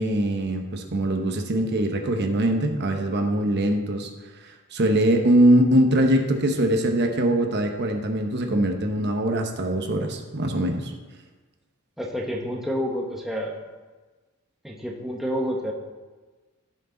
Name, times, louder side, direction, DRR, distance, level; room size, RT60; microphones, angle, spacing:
voice 1, 0.0-4.1 4.4-10.9, right 1 dB, 50° right, 4 dB, 1.0 m, -22 dB
voice 2, 12.0-13.6 14.6-15.7, equal, ahead, -2 dB, 1.1 m, -29 dB
14.5 x 6.3 x 3.9 m, 1.3 s
head